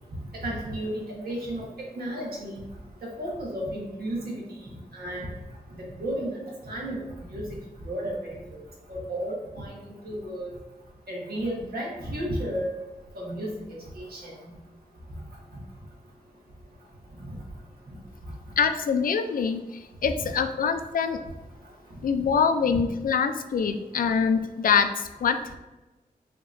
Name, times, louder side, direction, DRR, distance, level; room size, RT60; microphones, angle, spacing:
voice 1, 0.4-1.6 2.0-2.6 3.0-4.4 4.9-5.3 6.0-6.4 6.6-7.0 7.3-7.5 7.8-8.6 8.9-9.8 10.0-10.5 11.1-12.7 13.1-13.5 14.0-14.3 17.2-17.3 20.2-20.3 22.7-22.8, right 1 dB, 85° right, -4 dB, 1.4 m, -32 dB
voice 2, 18.6-19.7 20.0-21.2 22.0-25.6, left 6 dB, 65° left, 8 dB, 0.4 m, -24 dB
5.8 x 2.9 x 2.6 m, 1.1 s
wide cardioid pair, 100°, 15 cm